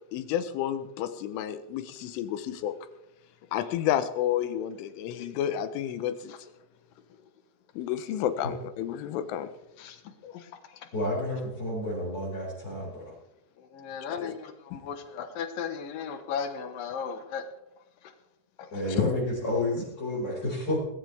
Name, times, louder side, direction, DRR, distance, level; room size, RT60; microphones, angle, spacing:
voice 1, 0.1-2.8 3.5-6.3 7.8-9.5 14.2-14.3 14.7-14.8 19.0-19.1, left 10 dB, 85° left, 11 dB, 3.6 m, -30 dB
voice 2, 10.9-13.1 18.7-20.8, left 1 dB, 20° left, -7 dB, 5.7 m, -30 dB
voice 3, 13.7-17.4, left 7 dB, 65° left, 7 dB, 2.3 m, -35 dB
20.5 x 15.0 x 3.5 m, 0.89 s
omnidirectional pair, 5.5 m